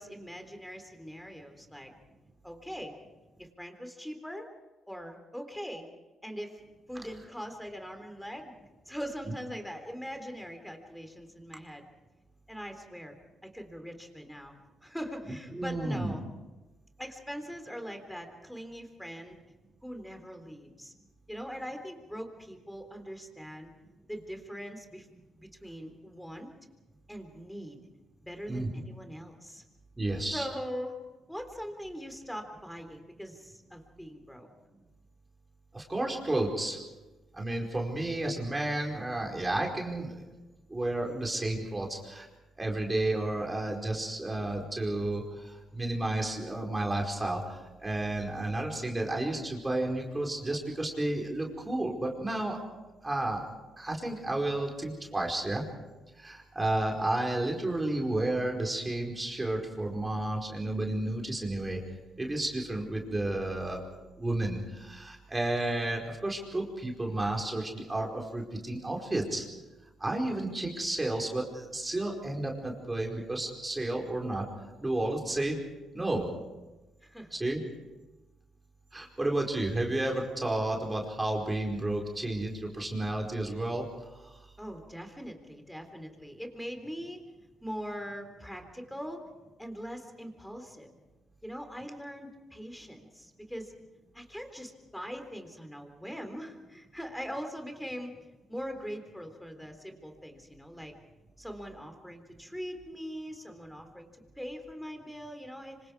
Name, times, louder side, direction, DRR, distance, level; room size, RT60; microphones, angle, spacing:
voice 1, 0.0-1.9 2.4-3.0 3.4-4.5 4.9-5.9 6.2-6.6 6.9-8.5 8.9-11.9 12.5-16.2 17.0-19.4 19.8-20.9 21.3-23.7 24.1-25.1 25.4-26.5 27.1-27.8 28.2-29.6 30.3-31.0 31.3-34.5 77.0-77.4 84.6-87.2 87.6-89.3 89.6-90.9 91.4-93.7 94.1-98.1 98.5-100.9 101.4-104.1 104.4-105.9, equal, 5° left, 6 dB, 3.7 m, -41 dB
voice 2, 15.5-16.1 28.5-28.7 30.0-30.5 35.7-36.8 37.3-40.3 40.7-42.3 42.6-52.6 53.0-53.4 53.8-55.6 56.2-61.8 62.2-63.8 64.2-69.5 70.0-74.5 74.8-75.6 75.9-76.3 77.3-77.6 78.9-84.4, right 2 dB, 15° right, 0 dB, 4.7 m, -32 dB
26.5 x 25.5 x 4.8 m, 1.1 s
cardioid pair, 90°, 0 cm